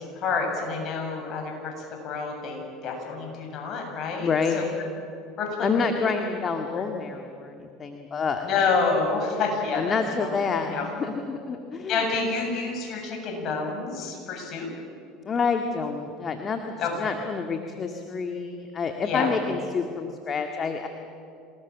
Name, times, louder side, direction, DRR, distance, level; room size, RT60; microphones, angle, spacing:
voice 1, 0.0-1.7 2.0-4.6 5.4-5.7 6.7-6.8 8.4-9.9 10.6-10.8 11.9-14.7 16.8-17.1 19.0-19.3, left 4 dB, 50° left, 1 dB, 7.8 m, -28 dB
voice 2, 4.2-4.6 5.6-8.5 9.7-12.0 15.3-16.6 17.0-20.9, left 5 dB, 35° left, 5 dB, 2.0 m, -28 dB
27.0 x 19.5 x 7.5 m, 2.6 s
hypercardioid pair, 75°, 0 cm